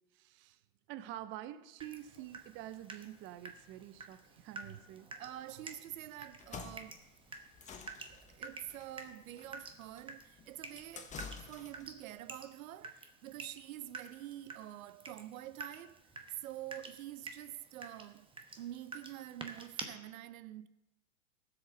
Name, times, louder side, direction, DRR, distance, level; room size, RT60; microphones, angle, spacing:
voice 1, 0.1-0.6 0.9-5.1, right 13 dB, 30° right, 0.6 m, -47 dB
Water tap faucet / Drip, 1.8-19.8, right 4 dB, 10° right, 1.0 m, -50 dB
voice 2, 5.2-7.0 8.1-11.2 11.5-16.0 16.4-18.3 18.6-20.7, right 13 dB, 70° right, 0.7 m, -47 dB
sound 1, 6.3-12.0, left 5 dB, 15° left, 1.1 m, -50 dB
13.5 x 7.8 x 6.3 m
hypercardioid pair, 120°, 42 cm